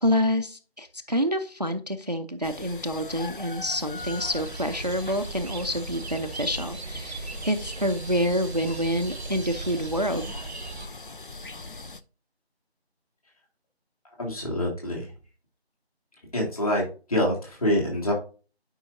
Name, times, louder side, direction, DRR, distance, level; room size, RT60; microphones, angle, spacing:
voice 1, 0.0-10.3, equal, 40° right, 9 dB, 0.5 m, -27 dB
sound 1, 2.4-12.0, left 3 dB, 50° left, 0.6 m, -41 dB
sound 2, 4.0-10.9, right 3 dB, 80° right, 0.8 m, -38 dB
voice 2, 14.2-15.1 16.3-16.8 17.1-18.1, left 1 dB, 35° left, -2 dB, 2.9 m, -26 dB
11.5 x 5.5 x 2.7 m, 0.36 s
figure-of-eight pair, 170°, 32 cm